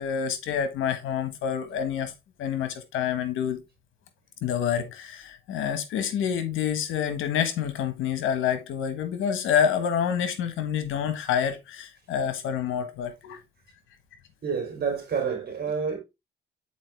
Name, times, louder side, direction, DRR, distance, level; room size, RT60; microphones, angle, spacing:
voice 1, 0.0-2.1 2.4-3.6 4.4-13.4, left 8 dB, 85° left, 1.4 m, -27 dB
voice 2, 14.4-16.0, right 6 dB, 55° right, 3.3 m, -28 dB
7.2 x 4.4 x 3.3 m
cardioid pair, 90°, 20 cm